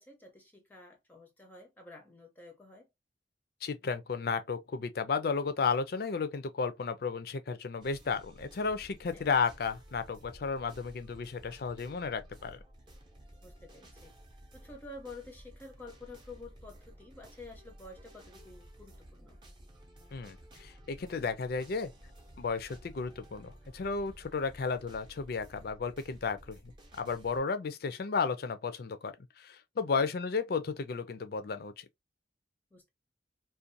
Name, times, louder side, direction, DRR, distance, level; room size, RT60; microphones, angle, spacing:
voice 1, 0.0-2.9 9.1-9.3 13.4-14.1 14.5-19.4 32.7-32.9, left 2 dB, 10° left, 0.5 m, -50 dB
voice 2, 3.6-12.6 20.1-21.9 22.4-26.6 27.0-31.9, left 5 dB, 60° left, 0.4 m, -33 dB
sound 1, 7.8-27.4, equal, 25° right, 0.7 m, -54 dB
2.5 x 2.2 x 2.5 m
head